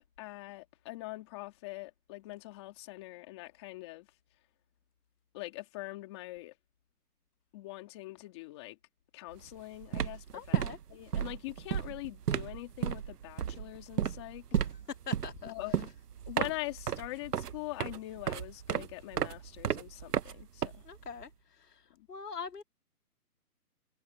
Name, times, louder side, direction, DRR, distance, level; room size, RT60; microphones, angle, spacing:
voice 1, 0.2-4.1 5.3-6.5 7.5-8.8 9.1-10.4 10.9-14.4 15.4-15.9 16.3-20.8 22.0-22.1, left 20 dB, 15° left, 2.7 m, -43 dB
sound 1, 9.3-9.5 9.8-21.2, right 8 dB, 85° right, 1.2 m, -34 dB
voice 2, 10.3-10.8 15.1-15.5 20.8-21.3 21.7-21.8 22.1-22.6, left 6 dB, 85° left, 2.5 m, -42 dB
hypercardioid pair, 175°, 46 cm